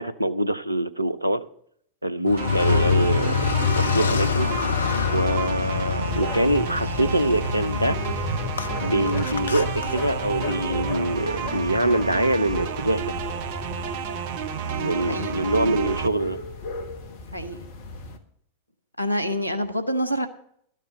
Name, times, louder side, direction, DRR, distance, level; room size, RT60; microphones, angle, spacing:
voice 1, 0.0-1.4 2.0-4.5 5.1-8.0 8.8-13.2 14.8-16.4, right 1 dB, 85° right, 0.5 m, -24 dB
voice 2, 2.2-2.6 5.5-5.7 14.6-15.4 17.3-17.6 19.0-20.3, equal, 90° left, 1.0 m, -28 dB
Car, 2.3-10.5, left 7 dB, 70° left, 0.5 m, -26 dB
sound 1, 2.4-16.1, right 8 dB, 50° right, 0.7 m, -31 dB
sound 2, 6.1-18.2, left 3 dB, 50° left, 1.4 m, -35 dB
13.0 x 6.6 x 7.8 m
figure-of-eight pair, 90°, 0 cm